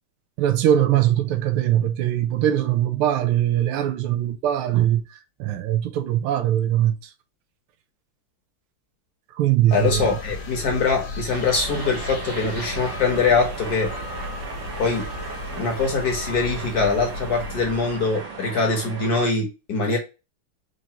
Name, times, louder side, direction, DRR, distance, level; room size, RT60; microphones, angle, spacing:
voice 1, 0.4-7.0 9.4-10.2, right 11 dB, 85° right, 1.5 m, -21 dB
sound 1, 9.7-18.2, left 2 dB, 85° left, 1.8 m, -35 dB
voice 2, 9.7-13.9 14.8-15.1 15.5-20.0, left 4 dB, 55° left, 1.3 m, -23 dB
sound 2, 11.3-19.3, right 5 dB, 70° right, 1.5 m, -36 dB
4.8 x 2.6 x 2.8 m
omnidirectional pair, 2.3 m